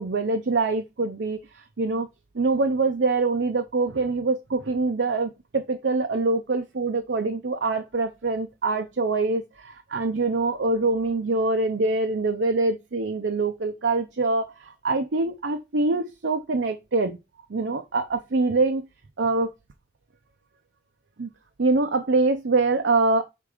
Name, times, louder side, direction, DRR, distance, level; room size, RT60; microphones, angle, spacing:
voice 1, 0.0-2.1 2.3-17.2 17.5-18.8 19.2-19.5 21.2-21.3 21.6-23.2, right 3 dB, 70° right, 0.6 m, -24 dB
5.2 x 3.7 x 4.9 m
head